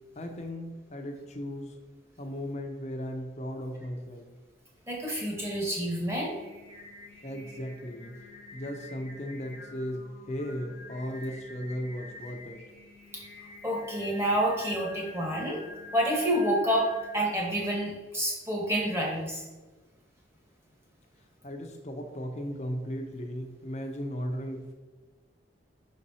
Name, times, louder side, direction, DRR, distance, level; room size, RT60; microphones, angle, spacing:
voice 1, 0.2-1.8 2.2-4.3 7.2-8.1 8.5-12.6 21.4-24.7, equal, 35° left, 3 dB, 0.7 m, -36 dB
voice 2, 4.9-6.3 13.1-13.2 13.6-15.6 15.9-16.9 17.1-19.4, equal, 15° right, -3 dB, 1.4 m, -28 dB
Singing, 5.9-17.6, left 2 dB, 30° right, 1.7 m, -48 dB
5.7 x 4.3 x 4.2 m, 1.2 s
head